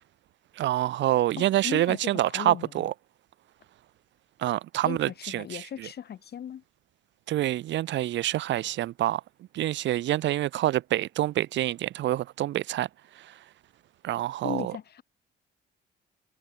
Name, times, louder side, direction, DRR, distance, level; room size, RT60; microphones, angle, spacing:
voice 1, 0.6-2.9 4.4-5.9 7.3-9.2 9.5-12.9 13.2-13.3 14.0-14.7, right 14 dB, 65° right, 0.5 m, -27 dB
voice 2, 1.4-2.9 4.8-6.6 14.4-15.0, left 9 dB, 55° left, 1.3 m, -37 dB
cardioid pair, 90°, 20 cm